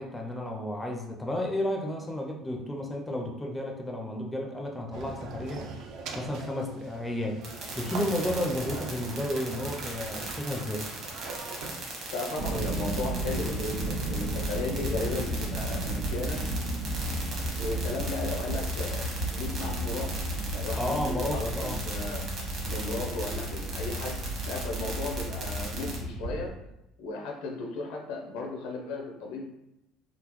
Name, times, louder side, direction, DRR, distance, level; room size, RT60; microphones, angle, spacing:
voice 1, 0.0-5.6 6.2-7.4 7.8-10.9 20.8-21.8, left 1 dB, 10° left, 1 dB, 0.4 m, -32 dB
sound 1, 4.9-11.8, right 4 dB, 60° right, 0.4 m, -41 dB
sound 2, 7.4-26.0, right 3 dB, 45° right, 1.0 m, -39 dB
voice 2, 12.1-16.5 17.6-20.2 20.5-22.3 22.7-26.5 27.0-29.5, left 3 dB, 85° left, 1 dB, 0.6 m, -35 dB
sound 3, 12.4-26.5, right 1 dB, 85° right, 0.9 m, -33 dB
3.7 x 2.0 x 3.0 m, 0.86 s
cardioid pair, 145°, 0 cm